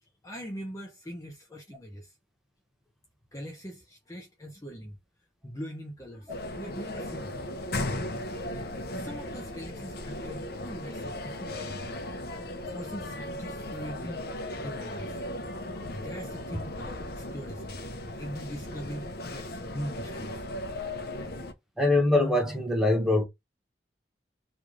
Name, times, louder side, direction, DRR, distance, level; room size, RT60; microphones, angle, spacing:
voice 1, 0.0-2.2 3.3-5.0 5.4-7.3 8.9-12.1 12.7-14.3 14.6-15.2 15.9-17.8 18.2-20.5, equal, 20° left, 0.7 m, -41 dB
sound 1, 6.3-21.5, left 1 dB, 60° left, 0.7 m, -37 dB
voice 2, 21.8-23.2, left 2 dB, ahead, 1.1 m, -23 dB
3.1 x 2.5 x 3.7 m
head